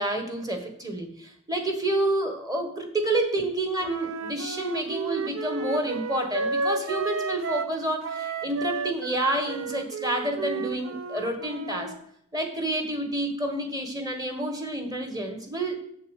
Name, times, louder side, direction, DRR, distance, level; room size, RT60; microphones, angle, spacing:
voice 1, 0.0-11.9 12.3-15.8, right 1 dB, 15° right, 5 dB, 1.3 m, -29 dB
Wind instrument woodwind instrument, 3.8-7.8 8.0-12.0, right 4 dB, 70° right, 0.7 m, -32 dB
7.2 x 6.7 x 6.4 m, 0.70 s
head